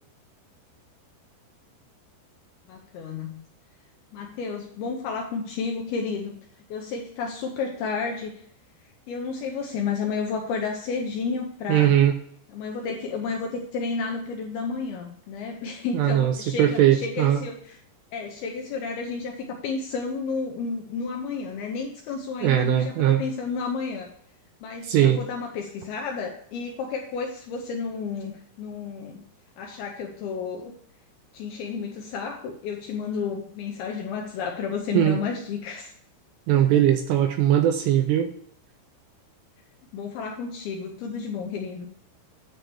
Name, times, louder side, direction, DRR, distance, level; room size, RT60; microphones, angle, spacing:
voice 1, 2.7-3.4 4.1-6.4 6.7-8.4 9.1-11.9 12.5-17.8 18.1-24.1 24.6-29.2 29.6-30.7 31.3-35.9 36.5-36.7 39.9-41.9, left 5 dB, 80° left, 1 dB, 2.3 m, -31 dB
voice 2, 11.7-12.1 15.9-17.4 22.4-23.2 24.8-25.2 34.9-35.2 36.5-38.3, right 11 dB, 85° right, 6 dB, 2.5 m, -20 dB
9.7 x 3.4 x 7.0 m, 0.63 s
omnidirectional pair, 5.3 m